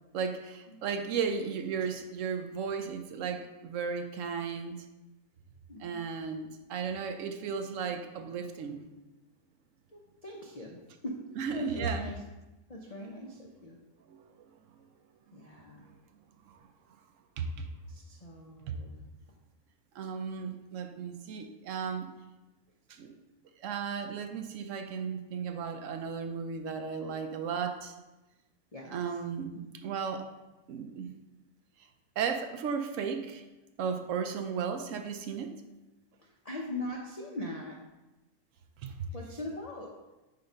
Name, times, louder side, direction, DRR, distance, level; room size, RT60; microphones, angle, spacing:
voice 1, 0.1-4.9 5.8-8.8 11.3-12.1 14.1-14.5 15.7-15.9 16.5-16.6 17.4-17.7 18.7-18.8 19.9-22.1 22.9-23.1 23.6-27.9 28.9-30.2 30.7-31.1 32.2-33.4 33.8-35.5 38.8-38.9, right 6 dB, 65° right, 6 dB, 0.9 m, -35 dB
voice 2, 5.7-6.0 9.9-11.2 11.5-12.1 12.7-13.8 15.3-15.9 17.9-18.9 28.7-29.0 36.2-37.8 39.1-39.9, left 1 dB, 45° left, -2 dB, 0.5 m, -41 dB
7.7 x 2.6 x 5.4 m, 1.0 s
omnidirectional pair, 1.6 m